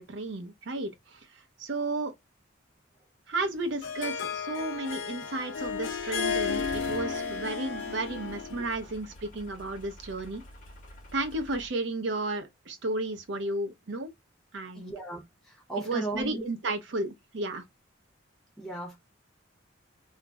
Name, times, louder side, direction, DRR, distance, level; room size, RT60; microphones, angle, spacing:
voice 1, 0.0-2.1 3.3-10.4 11.1-14.1 14.5-14.9 15.9-17.6, right 2 dB, 60° right, 0.5 m, -33 dB
Harp, 3.4-8.7, left 6 dB, 70° left, 0.6 m, -33 dB
sound 1, 5.6-11.7, left 1 dB, 40° left, 0.7 m, -48 dB
voice 2, 14.7-16.4 18.6-19.0, right 2 dB, ahead, 0.7 m, -36 dB
2.3 x 2.0 x 3.4 m
head